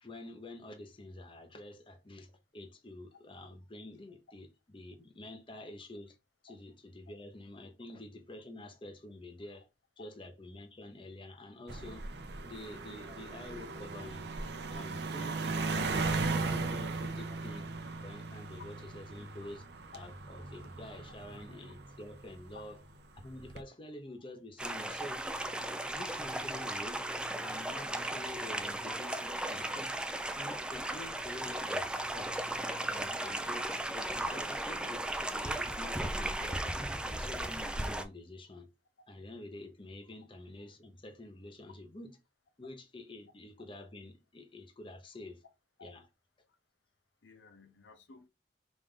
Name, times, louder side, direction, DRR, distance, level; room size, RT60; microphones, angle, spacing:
voice 1, 0.0-6.1 6.4-9.7 10.0-12.1 12.4-14.2 14.7-17.6 18.0-19.7 19.9-22.8 23.1-25.2 25.8-27.0 27.4-29.9 30.4-32.4 32.9-36.8 37.1-38.7 39.1-42.2 42.6-45.4 45.8-46.0, left 1 dB, 30° left, 0.8 m, -48 dB
sound 1, 11.7-22.4 23.2-23.6, right 3 dB, 65° right, 0.6 m, -37 dB
sound 2, 24.6-38.0, right 1 dB, 5° right, 0.3 m, -36 dB
voice 2, 47.2-48.3, left 4 dB, 85° left, 0.8 m, -55 dB
5.1 x 2.6 x 3.7 m
head